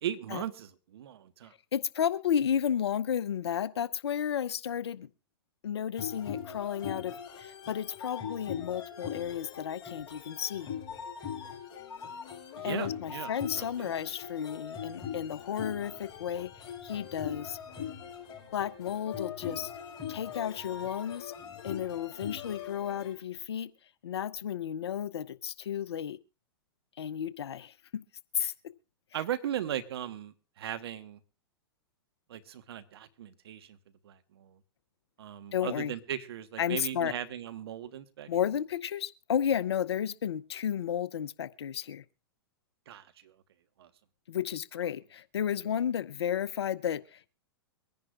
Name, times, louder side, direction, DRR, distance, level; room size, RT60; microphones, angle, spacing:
voice 1, 0.0-1.5 12.6-13.3 13.6-13.9 29.1-31.2 32.3-33.8 34.0-34.6 35.2-38.3 42.9-43.3 43.8-43.9, right 10 dB, 70° right, 1.3 m, -38 dB
voice 2, 1.7-5.1 5.6-10.7 12.6-16.5 16.8-17.6 18.5-19.7 20.1-21.3 21.6-23.7 24.0-26.2 27.0-28.0 28.3-28.5 35.5-35.9 36.6-37.1 38.3-42.0 44.3-47.3, left 9 dB, 75° left, 0.7 m, -32 dB
sound 1, 6.0-23.1, left 8 dB, 30° left, 5.1 m, -41 dB
23.5 x 10.5 x 2.5 m
hypercardioid pair, 115°, 14 cm